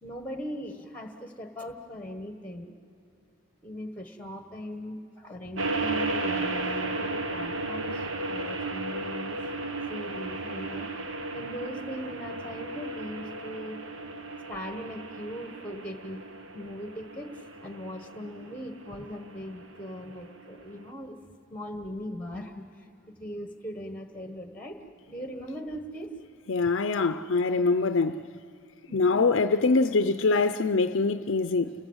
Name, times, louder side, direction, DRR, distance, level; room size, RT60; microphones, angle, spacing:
voice 1, 0.0-2.7 3.6-9.4 9.9-10.9 11.3-13.8 14.5-16.2 16.5-21.2 21.5-22.6 23.1-24.8 25.1-26.1 28.9-29.3, equal, 10° left, 1.3 m, -39 dB
sound 1, 5.6-20.9, right 2 dB, 65° right, 1.3 m, -35 dB
voice 2, 26.5-28.2 28.9-31.7, left 3 dB, 65° left, 0.6 m, -24 dB
29.5 x 20.0 x 8.1 m
head